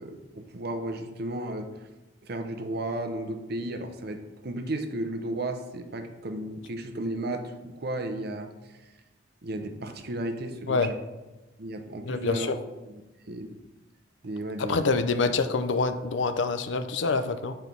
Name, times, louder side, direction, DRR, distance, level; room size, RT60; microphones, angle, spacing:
voice 1, 0.0-1.7 2.2-8.5 9.4-11.0 11.6-12.5 12.9-13.0 13.3-13.5 14.2-14.8 15.1-15.3, right 1 dB, 55° right, 7 dB, 0.8 m, -34 dB
voice 2, 12.0-12.6 14.6-17.6, left 4 dB, 75° left, 10 dB, 0.5 m, -26 dB
8.2 x 4.5 x 5.4 m, 1.1 s
head